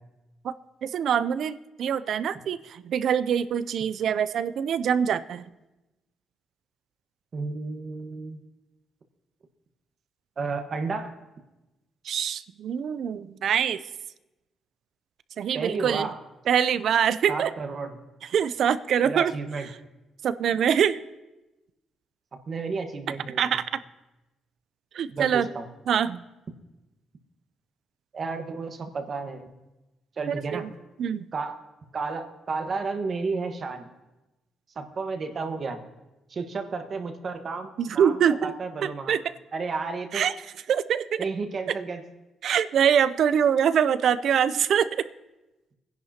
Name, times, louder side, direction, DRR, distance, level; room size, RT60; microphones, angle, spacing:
voice 1, 0.8-5.4 12.0-13.8 15.4-16.1 16.5-17.5 18.3-19.3 20.2-21.0 23.4-23.8 24.9-25.5 25.9-26.2 30.5-30.7 31.0-31.3 37.8-38.5 38.8-39.2 40.1-40.3 40.7-41.2 42.4-45.1, right 8 dB, 65° right, 15 dB, 0.5 m, -24 dB
voice 2, 7.3-8.4 10.4-11.1 15.5-16.2 17.3-18.0 19.0-19.7 22.5-23.6 25.1-25.7 28.1-29.5 30.2-30.7 31.3-31.6 31.9-33.9 34.7-35.8 36.3-37.7 37.9-39.2 39.5-40.2 41.2-42.0, right 4 dB, 45° right, 5 dB, 1.4 m, -32 dB
21.0 x 10.5 x 2.9 m, 1.0 s
cardioid pair, 90°, 0 cm